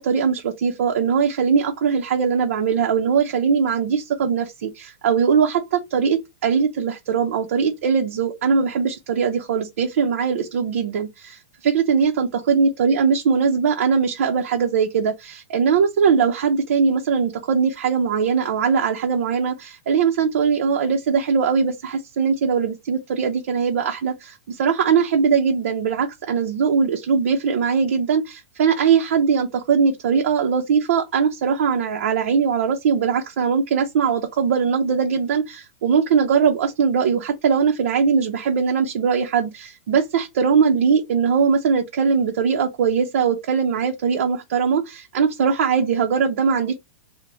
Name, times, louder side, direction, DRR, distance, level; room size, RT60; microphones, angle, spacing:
voice 1, 0.0-46.7, right 6 dB, 70° right, 0.7 m, -20 dB
3.0 x 2.2 x 3.7 m
hypercardioid pair, 150°, 7 cm